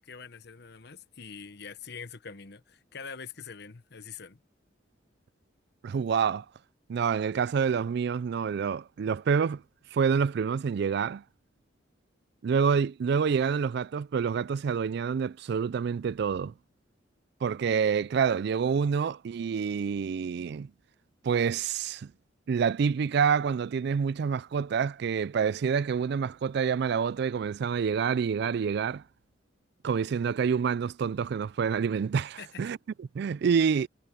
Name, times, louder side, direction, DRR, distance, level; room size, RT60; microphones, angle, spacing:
voice 1, 0.0-4.4 32.4-32.6, left 6 dB, 60° left, 1.1 m, -44 dB
voice 2, 5.8-6.5 6.9-9.6 9.9-11.2 12.4-16.5 17.4-20.7 21.2-22.1 22.5-29.0 29.8-33.9, right 6 dB, 60° right, 0.3 m, -27 dB
head